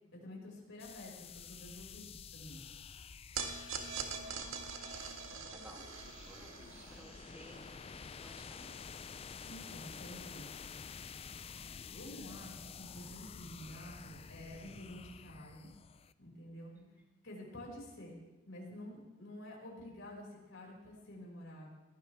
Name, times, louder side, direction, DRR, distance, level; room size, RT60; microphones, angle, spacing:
voice 1, 0.1-2.6 9.4-10.7 11.9-15.7 16.2-16.7 17.2-18.2 18.5-21.7, left 1 dB, 70° left, -4 dB, 6.0 m, -49 dB
sound 1, 0.8-16.1, left 6 dB, 30° left, 0.4 m, -50 dB
sound 2, 3.4-9.8, right 5 dB, 85° right, 1.8 m, -45 dB
voice 2, 4.0-4.5 5.3-7.6 8.2-8.7 16.7-16.9, equal, 10° right, -1 dB, 2.8 m, -57 dB
22.0 x 16.0 x 3.6 m, 1.1 s
head